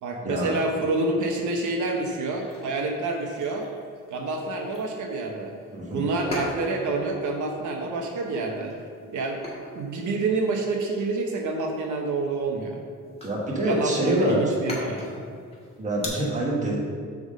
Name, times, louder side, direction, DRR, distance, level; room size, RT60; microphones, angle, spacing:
voice 1, 0.0-3.7 4.1-5.5 5.9-8.7 9.1-9.4 9.7-12.8 13.6-15.1 15.3-15.4, right 3 dB, 70° right, 1 dB, 0.9 m, -28 dB
sound 1, 2.3-16.1, left 1 dB, 20° left, 1.4 m, -42 dB
voice 2, 5.7-6.0 13.2-14.4 15.8-16.8, right 1 dB, 25° right, -3 dB, 1.3 m, -26 dB
7.7 x 3.7 x 6.5 m, 2.2 s
wide cardioid pair, 175°, 31 cm